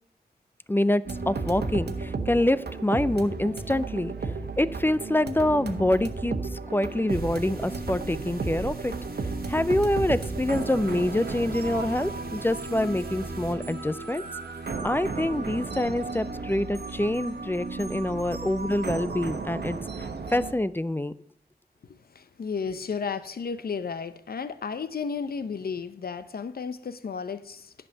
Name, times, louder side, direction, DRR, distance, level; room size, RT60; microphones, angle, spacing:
voice 1, 0.7-4.1 4.6-6.4 6.7-9.0 9.5-14.2 14.8-19.8 20.3-21.1, left 1 dB, 15° left, 0.4 m, -26 dB
sound 1, 1.0-20.5, right 4 dB, 80° right, 1.2 m, -34 dB
sound 2, 7.1-13.5, right 3 dB, 65° right, 1.5 m, -42 dB
voice 2, 22.1-27.7, left 5 dB, 65° left, 0.7 m, -33 dB
11.0 x 5.4 x 6.6 m
wide cardioid pair, 75°, 17 cm